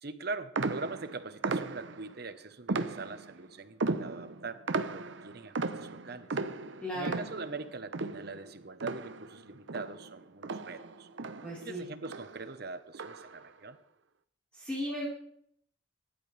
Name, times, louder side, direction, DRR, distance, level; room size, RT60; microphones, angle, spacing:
voice 1, 0.0-6.3 6.9-11.1 11.6-13.8, right 3 dB, 60° right, 11 dB, 1.1 m, -42 dB
sound 1, 0.5-2.1 2.7-3.4 3.8-9.4 9.7-11.7 12.0-12.4 12.9-13.4, right 3 dB, 85° right, 0.9 m, -36 dB
voice 2, 6.8-7.2 11.4-11.8 14.5-15.1, equal, 5° left, -8 dB, 4.3 m, -36 dB
25.5 x 11.5 x 3.4 m, 0.69 s
head